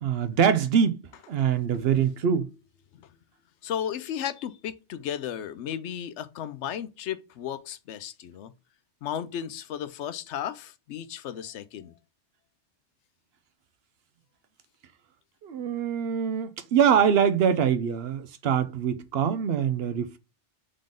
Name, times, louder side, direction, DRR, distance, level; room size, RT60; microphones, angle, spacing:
voice 1, 0.0-2.5 15.4-20.2, right 7 dB, 65° right, 0.7 m, -24 dB
voice 2, 3.6-8.5 9.0-11.9, left 9 dB, 75° left, 0.9 m, -34 dB
3.8 x 3.7 x 3.7 m
omnidirectional pair, 1.2 m